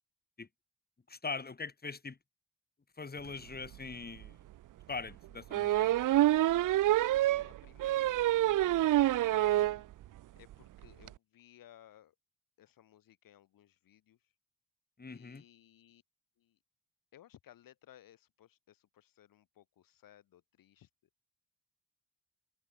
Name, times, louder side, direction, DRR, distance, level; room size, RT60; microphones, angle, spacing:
voice 1, 1.1-2.2 3.0-4.4 4.9-5.9 15.0-15.4, left 4 dB, 30° left, 4.4 m, -42 dB
sound 1, 3.7-3.8 4.2-4.3 5.5-9.8 10.2-10.3 10.5-10.6 10.8-11.1, right 14 dB, 70° right, 0.6 m, -27 dB
voice 2, 6.7-9.9 10.3-12.1 12.6-14.3 15.1-16.0 16.4-16.6 17.1-20.9, left 12 dB, 85° left, 4.9 m, -61 dB
cardioid pair, 95°, 33 cm